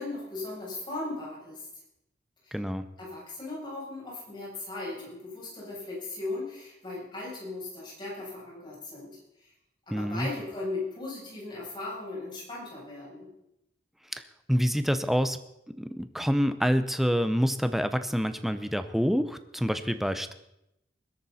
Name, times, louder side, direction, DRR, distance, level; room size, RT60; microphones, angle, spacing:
voice 1, 0.0-1.7 2.4-2.6 3.0-9.5 9.9-13.3, left 2 dB, 25° left, -5 dB, 7.9 m, -37 dB
voice 2, 2.5-2.8 9.9-10.3 14.1-14.2 14.5-15.4 15.7-20.3, equal, ahead, 10 dB, 0.7 m, -27 dB
20.5 x 13.0 x 4.2 m, 0.83 s
head